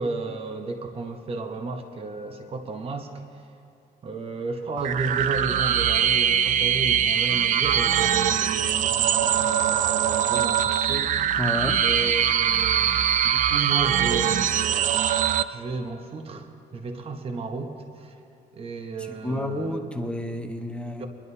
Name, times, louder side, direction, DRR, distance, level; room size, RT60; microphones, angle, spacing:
voice 1, 0.0-3.1 4.0-11.1 11.8-18.1 18.5-19.9 21.0-21.1, right 3 dB, 35° right, 4 dB, 1.0 m, -33 dB
sound 1, 4.8-15.4, right 9 dB, 50° right, 0.4 m, -22 dB
voice 2, 11.4-11.8 19.2-21.1, left 1 dB, 5° left, 5 dB, 0.8 m, -30 dB
23.5 x 11.0 x 2.8 m, 2.4 s
cardioid pair, 110°, 17 cm